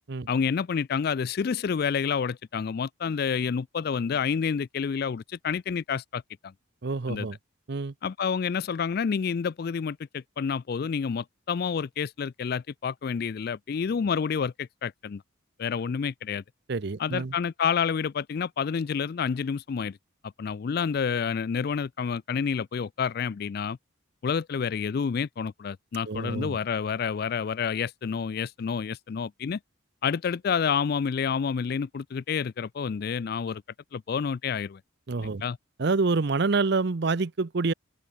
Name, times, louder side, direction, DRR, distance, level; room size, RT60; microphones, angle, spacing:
voice 1, 0.3-6.5 7.1-7.3 8.0-15.2 15.6-16.4 17.0-20.0 20.2-23.8 24.2-29.6 30.0-33.6 33.9-34.8 35.2-35.6, left 6 dB, 50° left, 0.3 m, -29 dB
voice 2, 6.8-7.4 7.7-7.9 16.7-17.3 26.1-26.6 35.1-35.4 35.8-37.7, right 3 dB, 55° right, 0.6 m, -27 dB
head